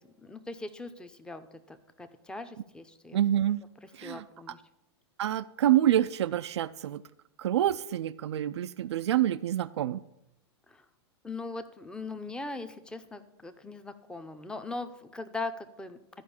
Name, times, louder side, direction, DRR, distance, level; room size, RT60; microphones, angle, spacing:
voice 1, 0.2-3.2 4.0-4.6 10.7-10.8 11.2-16.0, left 3 dB, 5° left, 9 dB, 0.7 m, -40 dB
voice 2, 3.1-3.6 3.9-4.2 5.2-7.0 7.4-10.0, right 12 dB, 85° right, 14 dB, 0.4 m, -27 dB
12.0 x 5.1 x 7.1 m, 0.88 s
hypercardioid pair, 120°, 14 cm